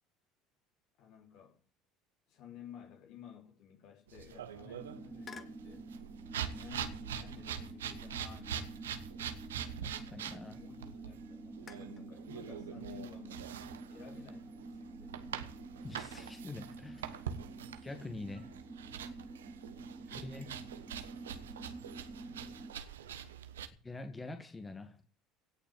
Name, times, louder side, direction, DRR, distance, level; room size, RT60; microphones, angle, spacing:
voice 1, 1.0-1.6 2.3-5.9 6.5-8.9 10.6-13.5 13.9-15.2 19.7-20.3 22.4-23.8, left 9 dB, 60° left, 4 dB, 3.7 m, -54 dB
sound 1, 4.1-23.7, right 9 dB, 80° right, 1.2 m, -44 dB
sound 2, 4.8-22.7, right 3 dB, 20° right, 2.6 m, -49 dB
sound 3, 5.2-5.7 6.8-7.2 7.8-10.2 10.6-10.7 11.7-12.1 13.3-14.6 16.0-16.4, left 6 dB, 35° left, 1.6 m, -57 dB
voice 2, 9.8-10.6 15.8-17.2 17.8-18.5 20.1-20.5 23.8-25.0, left 2 dB, 20° left, 7 dB, 2.1 m, -45 dB
17.5 x 7.0 x 8.2 m, 0.41 s
hypercardioid pair, 65°, 0 cm